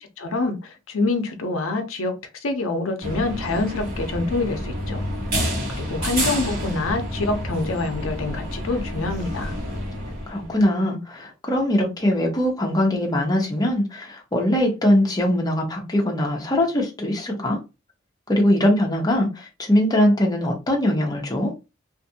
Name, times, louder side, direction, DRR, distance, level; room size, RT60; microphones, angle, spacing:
voice 1, 0.2-2.1 2.4-5.0 5.7-9.5, left 3 dB, 80° left, 0.6 m, -26 dB
sound 1, 3.0-10.5, equal, 45° right, 1.3 m, -29 dB
voice 2, 10.3-17.6 18.3-21.5, left 1 dB, 20° left, 0.7 m, -21 dB
2.5 x 2.5 x 2.7 m
head